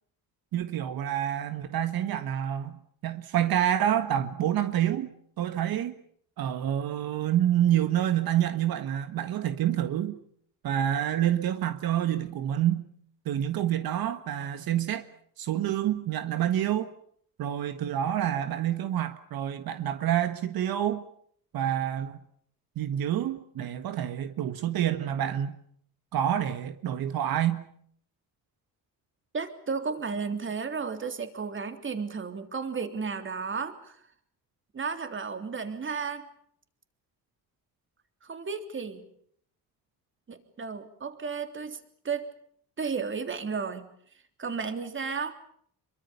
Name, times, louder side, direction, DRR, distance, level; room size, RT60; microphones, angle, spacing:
voice 1, 0.5-6.0 6.4-10.2 10.6-12.8 13.2-15.1 15.4-16.9 17.4-21.0 21.5-22.2 22.7-25.5 26.1-27.6, right 11 dB, 75° right, 1.7 m, -28 dB
voice 2, 29.3-34.0 34.7-36.3 38.2-39.1 40.3-42.3 42.8-43.9 44.4-45.3, right 5 dB, 35° right, 3.3 m, -33 dB
27.0 x 23.5 x 7.0 m
cardioid pair, 125°, 36 cm